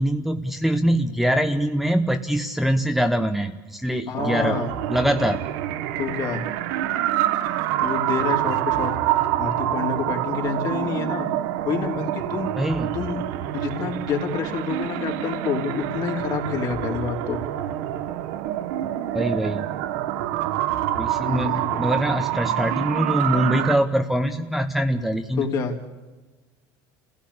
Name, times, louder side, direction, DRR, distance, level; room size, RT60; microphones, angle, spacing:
voice 1, 0.0-4.6 4.9-5.4 12.6-13.0 19.1-19.7 21.0-25.5, equal, ahead, 5 dB, 0.9 m, -23 dB
voice 2, 4.1-4.7 6.0-6.4 7.8-8.9 9.4-11.3 11.6-12.5 12.9-17.4 21.2-21.8 25.4-25.7, left 5 dB, 45° left, 2 dB, 3.4 m, -28 dB
sound 1, 4.2-23.8, right 13 dB, 85° right, 1.2 m, -26 dB
28.5 x 16.0 x 8.6 m, 1.2 s
cardioid pair, 130°, 9 cm